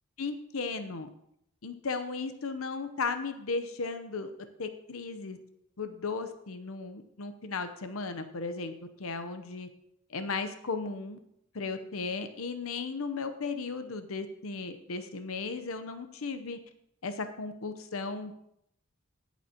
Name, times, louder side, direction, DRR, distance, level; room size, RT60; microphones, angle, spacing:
voice 1, 0.2-1.1 1.6-4.3 4.6-5.4 5.8-8.7 9.0-9.7 10.1-11.2 11.5-16.6 17.0-18.3, left 4 dB, 80° left, 9 dB, 0.8 m, -35 dB
19.0 x 7.2 x 2.9 m, 0.76 s
head